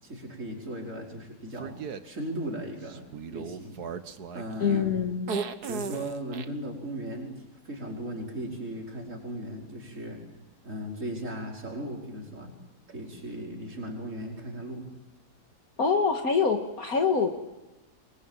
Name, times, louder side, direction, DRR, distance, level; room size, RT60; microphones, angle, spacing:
voice 1, 0.0-3.8 4.3-5.0 5.7-10.2 10.6-12.5 12.9-14.9, right 1 dB, 50° right, 0 dB, 5.7 m, -37 dB
sound 1, 1.6-2.0 2.9-6.5, right 6 dB, 70° right, 1.8 m, -36 dB
voice 2, 4.6-5.4 15.8-17.3, left 5 dB, 60° left, 4 dB, 2.2 m, -25 dB
27.5 x 23.0 x 9.0 m, 1.1 s
omnidirectional pair, 1.7 m